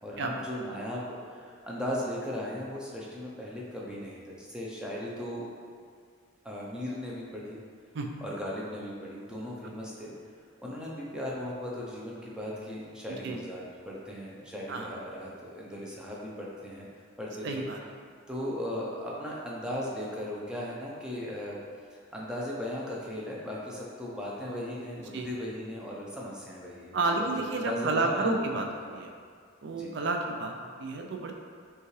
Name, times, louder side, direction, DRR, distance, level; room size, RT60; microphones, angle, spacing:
voice 1, 0.0-5.5 6.4-7.6 8.2-10.1 10.6-16.9 17.2-17.7 18.3-21.6 21.9-28.7 29.7-29.9, left 1 dB, 5° right, -5 dB, 0.5 m, -37 dB
voice 2, 17.4-17.8 25.1-25.3 26.9-28.7 28.9-29.1 29.6-31.3, right 2 dB, 55° right, 2 dB, 0.4 m, -30 dB
5.4 x 2.4 x 3.1 m, 2.1 s
head